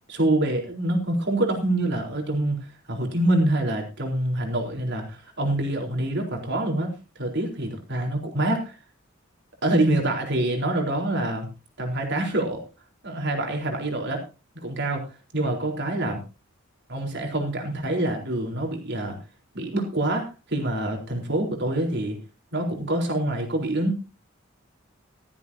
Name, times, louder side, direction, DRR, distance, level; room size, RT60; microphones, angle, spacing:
voice 1, 0.1-8.8 9.6-11.5 11.8-12.6 13.0-14.2 14.5-15.1 15.3-16.2 16.9-19.2 19.5-22.2 22.5-24.1, right 1 dB, 60° right, 2 dB, 4.2 m, -26 dB
15.0 x 15.0 x 2.8 m, 0.30 s
head